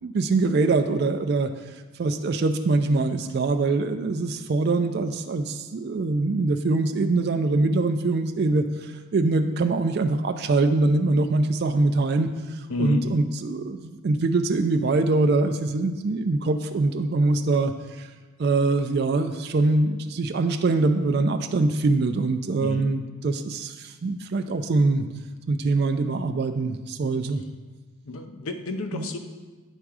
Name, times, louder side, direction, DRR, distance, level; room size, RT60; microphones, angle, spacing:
voice 1, 0.0-1.5 2.0-17.7 18.0-18.1 18.4-25.1 25.5-27.4 28.9-29.1, right 3 dB, 50° right, 6 dB, 0.3 m, -23 dB
voice 2, 12.7-13.1 22.6-22.8 28.1-29.2, left 3 dB, 80° left, 6 dB, 0.6 m, -30 dB
9.0 x 3.5 x 4.8 m, 1.3 s
head